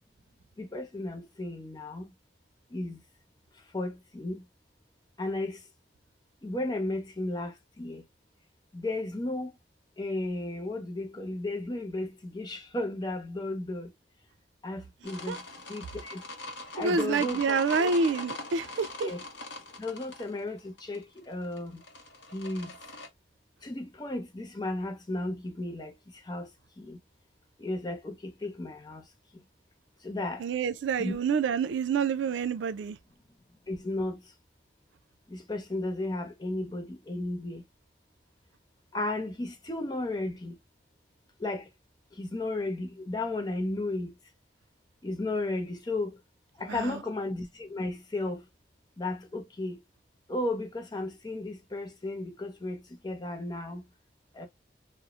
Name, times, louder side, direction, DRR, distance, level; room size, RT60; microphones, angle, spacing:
voice 1, 0.6-2.1 2.7-3.0 3.7-4.4 5.2-5.6 6.4-8.0 8.7-9.5 10.0-13.9 14.6-15.4 15.7-16.2 16.7-17.9 19.0-19.2 19.8-21.8 22.3-22.7 23.6-26.5 26.8-27.0 27.6-29.0 30.0-30.5 31.0-31.2 33.7-34.2 35.3-37.6 38.9-40.6 41.4-41.7 42.1-44.1 45.0-46.2 46.6-48.4 49.0-49.8 50.3-53.8 54.3-54.5, left 2 dB, 20° left, 0.5 m, -34 dB
sound 1, 15.0-23.1, left 2 dB, 70° left, 0.8 m, -41 dB
voice 2, 16.8-19.1 30.4-33.0 46.7-47.0, right 5 dB, 80° right, 0.3 m, -28 dB
3.0 x 2.0 x 2.3 m
head